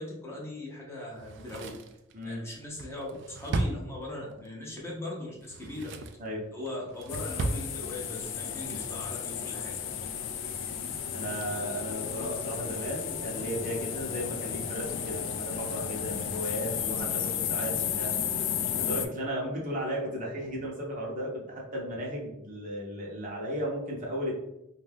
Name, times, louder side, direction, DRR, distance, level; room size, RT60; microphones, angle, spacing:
voice 1, 0.0-1.7 2.2-5.9 6.5-9.8, left 1 dB, 15° left, -4 dB, 0.6 m, -39 dB
Drawer open or close, 1.2-4.5 5.3-6.3 6.7-7.7 8.0-8.1, right 2 dB, 60° right, 0.3 m, -35 dB
voice 2, 2.1-2.4 6.2-6.4 10.8-18.1 18.8-24.4, equal, 40° right, -2 dB, 0.7 m, -35 dB
sound 1, 7.1-19.1, left 8 dB, 65° left, 0.3 m, -33 dB
2.6 x 2.3 x 3.4 m, 0.87 s
head